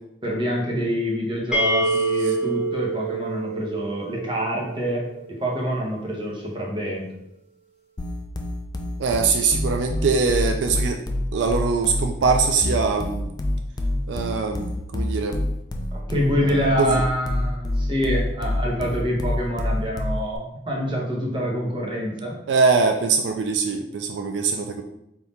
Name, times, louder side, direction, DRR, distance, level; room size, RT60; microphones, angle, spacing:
voice 1, 0.2-5.0 5.3-7.1 15.9-22.4, equal, 30° right, -3 dB, 1.0 m, -26 dB
sound 1, 1.5-5.2, right 3 dB, 5° right, 0.9 m, -27 dB
sound 2, 8.0-20.4, left 1 dB, 25° left, 0.4 m, -27 dB
voice 2, 9.0-11.0 11.3-13.3 14.1-15.4 16.4-17.0 22.5-24.8, right 4 dB, 80° right, 4 dB, 0.4 m, -22 dB
3.5 x 2.8 x 4.1 m, 0.82 s
head